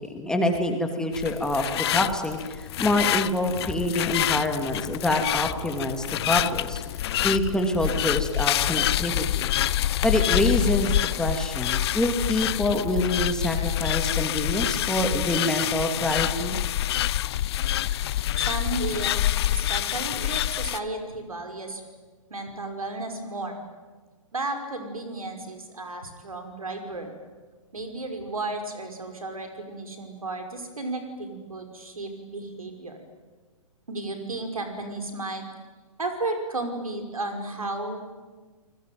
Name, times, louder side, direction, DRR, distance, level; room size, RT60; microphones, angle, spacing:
voice 1, 0.0-1.7 1.9-6.8 7.2-9.1 9.5-9.6 10.0-16.6, left 1 dB, 5° left, 4 dB, 2.8 m, -26 dB
sound 1, 1.1-20.8, left 13 dB, 50° left, 0.8 m, -27 dB
voice 2, 18.4-19.2 19.5-21.8 22.3-23.6 24.3-27.1 27.7-33.0 33.9-35.4 36.0-38.2, right 2 dB, 85° right, 5 dB, 5.6 m, -33 dB
29.0 x 20.5 x 9.4 m, 1.4 s
figure-of-eight pair, 125°, 18 cm